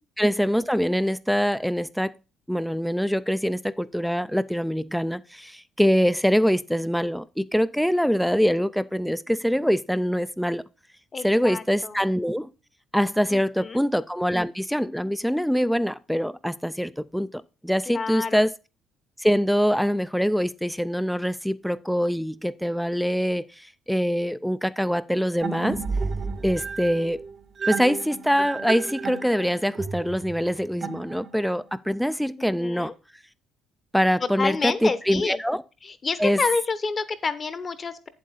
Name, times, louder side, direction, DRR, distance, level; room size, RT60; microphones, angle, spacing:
voice 1, 0.2-2.1 2.5-10.6 11.2-12.5 12.9-18.5 19.2-25.8 26.4-27.2 27.7-32.9 33.9-35.6 36.2-36.4, equal, ahead, 0.4 m, -24 dB
voice 2, 11.1-12.0 13.3-13.8 17.9-18.4 32.4-32.9 34.4-35.4 35.8-38.1, left 4 dB, 35° left, 0.9 m, -29 dB
sound 1, 25.4-31.6, right 4 dB, 40° right, 0.8 m, -32 dB
8.2 x 7.6 x 4.0 m
cardioid pair, 100°, 0 cm